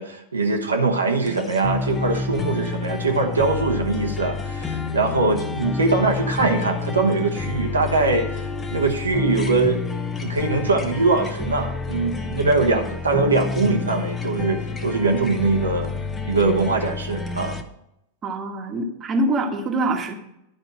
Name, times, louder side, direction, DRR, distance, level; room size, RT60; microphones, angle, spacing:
voice 1, 0.0-8.4 8.7-9.8 10.2-15.9 16.2-17.6, right 3 dB, 75° right, 3 dB, 1.1 m, -22 dB
sound 1, 1.3-17.6, left 4 dB, 20° left, 1.0 m, -29 dB
voice 2, 18.2-20.1, right 2 dB, 25° right, 4 dB, 1.3 m, -24 dB
11.5 x 5.0 x 6.2 m, 0.81 s
figure-of-eight pair, 90°, 0 cm